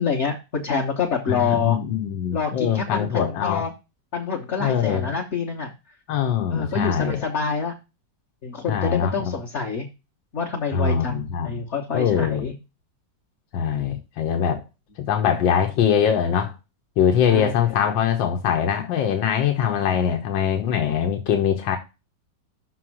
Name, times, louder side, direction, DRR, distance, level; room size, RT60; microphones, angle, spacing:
voice 1, 0.0-1.8 2.3-3.7 4.1-5.7 6.5-7.7 8.4-9.9 10.3-12.5 17.3-17.5, left 5 dB, 45° left, 1.2 m, -26 dB
voice 2, 1.3-3.6 4.6-5.1 6.1-7.2 8.7-9.3 10.7-11.6 11.9-12.5 13.5-14.6 15.1-16.5 17.0-21.8, left 8 dB, 90° left, 1.6 m, -22 dB
6.3 x 4.2 x 6.1 m
omnidirectional pair, 2.0 m